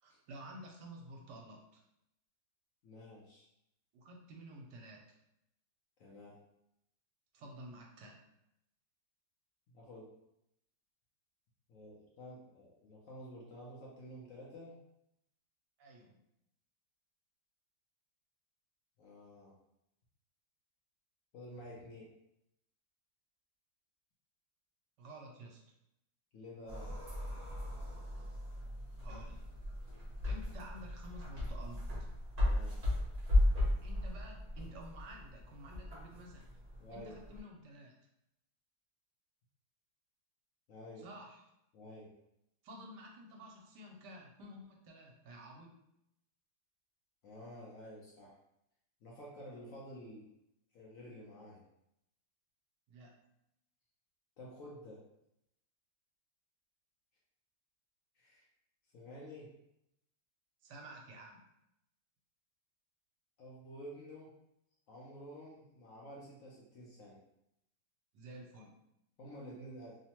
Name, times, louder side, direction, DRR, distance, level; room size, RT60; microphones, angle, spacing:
voice 1, 0.0-1.8 3.9-5.2 7.3-8.2 15.8-16.2 25.0-25.6 29.0-29.5 30.3-31.9 33.8-36.4 36.9-37.9 41.0-41.4 42.6-45.7 52.9-53.1 60.6-61.4 68.1-68.7, right 1 dB, 75° right, 1 dB, 1.2 m, -51 dB
voice 2, 2.8-3.4 6.0-6.4 9.7-10.1 11.7-14.8 19.0-19.5 21.3-22.1 26.3-26.9 32.4-32.8 36.8-37.2 40.7-41.1 41.7-42.1 47.2-48.3 49.0-50.3 50.7-51.6 54.4-55.0 58.2-58.4 58.9-59.5 63.4-64.3 64.9-67.2 69.2-70.0, equal, 65° left, -4 dB, 0.8 m, -50 dB
sound 1, 26.7-37.4, left 1 dB, 60° right, 0.4 m, -36 dB
3.1 x 2.0 x 2.8 m, 0.82 s
omnidirectional pair, 1.9 m